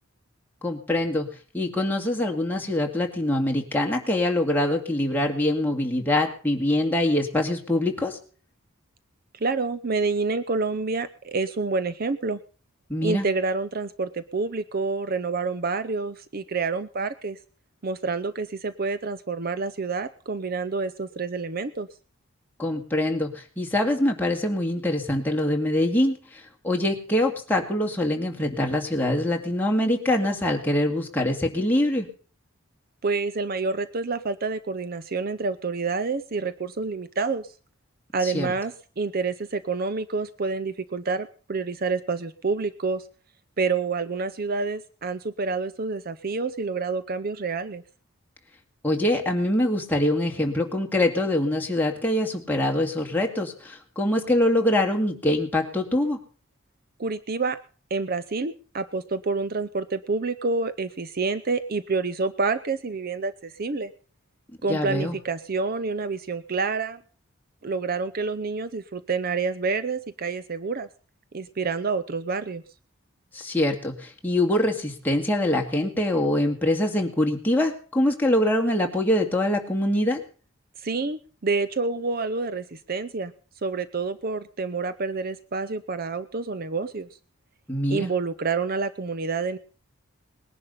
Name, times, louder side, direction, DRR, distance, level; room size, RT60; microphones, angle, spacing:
voice 1, 0.6-1.3 1.5-8.2 12.9-13.3 22.6-32.1 38.2-38.5 48.8-56.2 64.7-65.2 73.3-80.2 87.7-88.1, left 1 dB, 10° left, 1 dB, 2.3 m, -24 dB
voice 2, 9.4-12.4 13.0-17.4 17.8-21.9 33.0-37.5 38.1-43.1 43.6-47.8 57.0-57.6 57.9-63.9 64.6-67.0 67.6-70.9 71.3-72.6 80.8-83.3 83.6-87.1 87.9-89.6, right 4 dB, 45° right, 13 dB, 0.6 m, -28 dB
20.0 x 11.0 x 5.6 m, 0.41 s
head